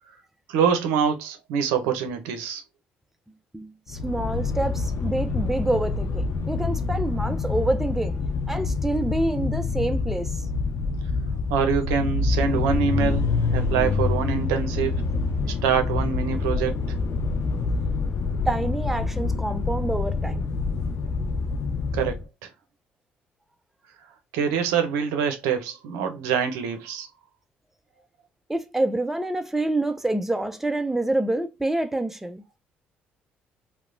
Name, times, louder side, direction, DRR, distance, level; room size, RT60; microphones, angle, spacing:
voice 1, 0.5-2.6 11.5-15.0 15.5-16.8 21.9-22.2 24.3-27.1, right 7 dB, 85° right, 0.5 m, -25 dB
voice 2, 3.5-8.2 8.5-10.3 14.8-14.9 16.5-16.7 18.5-20.5 28.5-32.4, right 2 dB, 5° right, 0.4 m, -27 dB
sound 1, 3.9-22.2, left 4 dB, 60° left, 0.4 m, -26 dB
2.9 x 2.1 x 2.5 m
hypercardioid pair, 60°, 5 cm